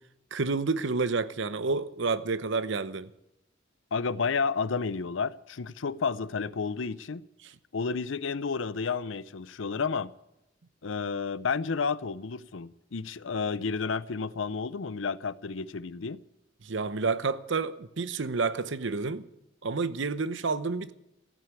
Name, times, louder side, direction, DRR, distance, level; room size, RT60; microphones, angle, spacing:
voice 1, 0.3-3.1 7.4-7.5 16.6-19.3 19.6-20.9, right 4 dB, 70° right, 0.8 m, -29 dB
voice 2, 3.9-7.2 7.7-10.1 10.8-16.2, left 5 dB, 75° left, 0.6 m, -31 dB
15.0 x 9.1 x 9.6 m
head